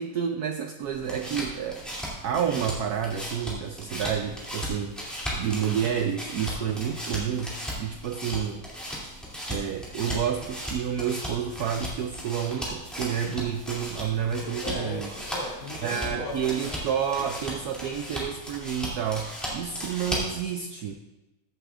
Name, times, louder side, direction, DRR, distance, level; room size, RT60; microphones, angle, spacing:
voice 1, 0.0-1.8 2.2-8.6 9.5-15.1 15.8-20.9, right 8 dB, 80° right, 5 dB, 0.8 m, -30 dB
sound 1, 0.8-20.4, equal, ahead, 2.4 m, -36 dB
voice 2, 14.4-16.8 17.2-17.3, left 1 dB, 85° left, -5 dB, 3.3 m, -37 dB
15.0 x 8.1 x 2.5 m, 1.0 s
omnidirectional pair, 2.2 m